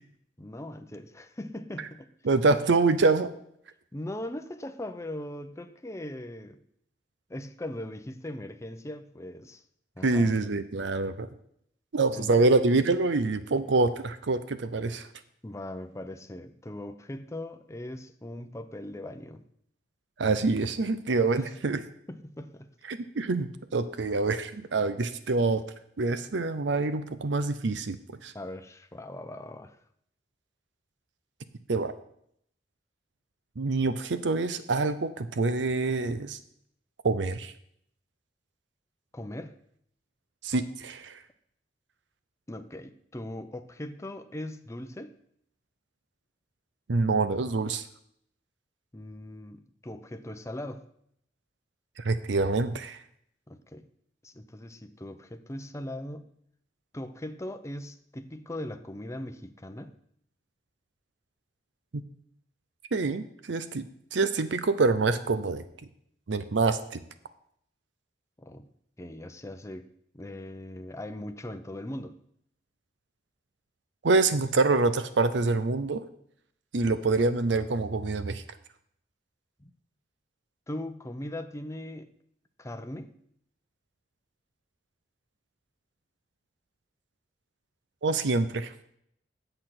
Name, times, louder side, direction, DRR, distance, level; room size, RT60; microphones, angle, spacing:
voice 1, 0.4-2.1 3.9-6.6 7.3-9.6 10.0-10.3 12.1-12.5 15.4-19.4 22.1-22.7 28.3-29.8 39.1-39.6 42.5-45.1 48.9-50.9 53.5-53.9 54.2-56.3 56.9-60.0 68.4-68.7 69.0-69.9 70.1-72.2 79.6-79.7 80.7-82.1 82.6-83.1, left 1 dB, 15° left, 8 dB, 0.6 m, -39 dB
voice 2, 2.2-3.3 10.0-11.3 11.9-15.1 20.2-21.8 22.9-25.6 26.0-28.3 31.7-31.9 33.6-36.4 37.0-37.5 40.4-41.2 46.9-47.8 52.0-53.0 62.9-65.6 66.3-67.0 74.0-76.0 76.7-78.4 88.0-88.7, right 3 dB, 80° right, 12 dB, 0.6 m, -26 dB
8.9 x 7.9 x 5.9 m, 0.71 s
head